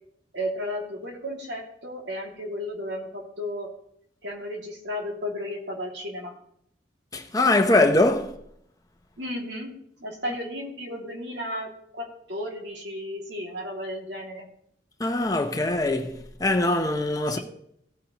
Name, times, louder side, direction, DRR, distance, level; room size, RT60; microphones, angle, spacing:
voice 1, 0.3-3.7 4.2-6.3 9.2-9.7 10.0-14.5 17.3-17.4, left 1 dB, 85° right, 2.8 m, -34 dB
voice 2, 7.1-8.3 15.0-17.4, left 2 dB, 20° left, 1.0 m, -22 dB
17.0 x 8.3 x 3.2 m
head